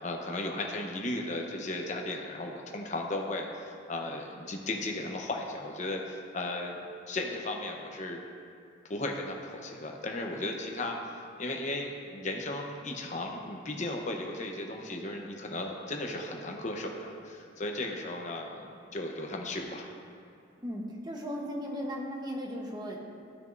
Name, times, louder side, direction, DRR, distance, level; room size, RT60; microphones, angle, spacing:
voice 1, 0.0-6.8 7.1-8.2 8.9-11.0 11.4-19.9, left 2 dB, 40° left, 2 dB, 0.8 m, -35 dB
voice 2, 20.6-23.0, equal, 20° right, -1 dB, 1.0 m, -36 dB
14.5 x 6.2 x 2.6 m, 2.5 s
head